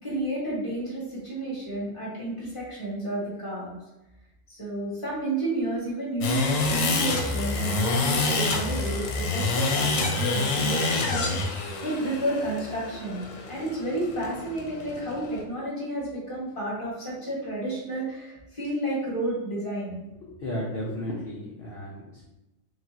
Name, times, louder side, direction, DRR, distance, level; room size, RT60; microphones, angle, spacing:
voice 1, 0.0-3.7 4.5-11.3 11.8-13.2 13.5-19.9, right 1 dB, 25° left, -7 dB, 1.6 m, -31 dB
sound 1, 6.2-15.4, left 3 dB, 80° left, 1.1 m, -27 dB
voice 2, 20.2-22.3, equal, 50° left, -5 dB, 0.9 m, -34 dB
5.0 x 3.0 x 2.8 m, 0.95 s
omnidirectional pair, 1.4 m